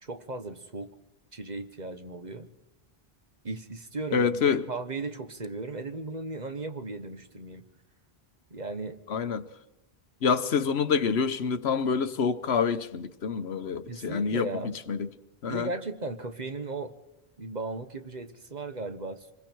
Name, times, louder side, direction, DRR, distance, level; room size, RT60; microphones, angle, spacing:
voice 1, 0.0-0.9 1.3-2.5 3.4-7.6 8.5-9.0 13.9-14.7 15.5-16.9 17.4-19.3, right 3 dB, 45° right, 1.4 m, -36 dB
voice 2, 4.1-4.6 9.1-9.4 10.2-15.1 15.4-15.7, left 6 dB, 80° left, 1.2 m, -27 dB
26.5 x 21.5 x 4.6 m
omnidirectional pair, 1.1 m